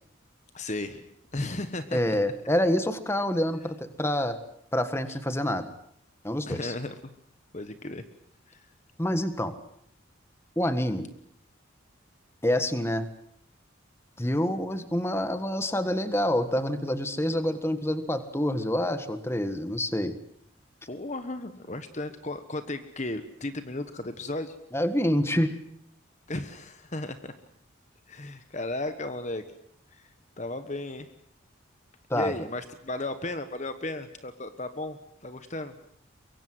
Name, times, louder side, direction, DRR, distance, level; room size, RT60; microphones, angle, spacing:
voice 1, 0.5-1.1 1.3-2.0 6.5-7.0 7.5-8.0 8.5-8.6 20.9-24.5 26.3-27.3 28.1-29.4 29.9-30.1 30.4-31.1 32.1-35.7, left 2 dB, 35° left, 10 dB, 1.3 m, -35 dB
voice 2, 1.9-4.4 4.7-5.7 6.2-6.7 9.0-9.5 10.5-11.1 12.4-13.1 14.2-20.2 24.7-25.6 32.1-32.3, left 1 dB, 10° left, 10 dB, 1.6 m, -27 dB
23.5 x 23.5 x 7.8 m, 0.67 s
head